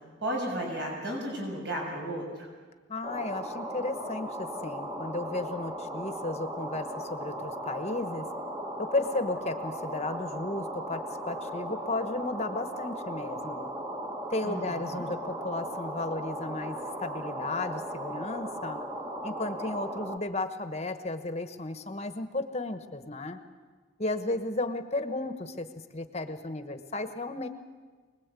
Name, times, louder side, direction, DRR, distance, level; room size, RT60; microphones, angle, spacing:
voice 1, 0.2-2.5 14.4-15.0, right 1 dB, 60° right, -1 dB, 6.7 m, -34 dB
voice 2, 2.9-8.3 8.8-13.7 14.3-18.8 19.2-23.4 24.0-27.5, left 2 dB, 30° left, 8 dB, 1.2 m, -34 dB
sound 1, 3.0-20.2, right 1 dB, 20° right, 1.5 m, -37 dB
24.5 x 20.5 x 8.4 m, 1.4 s
head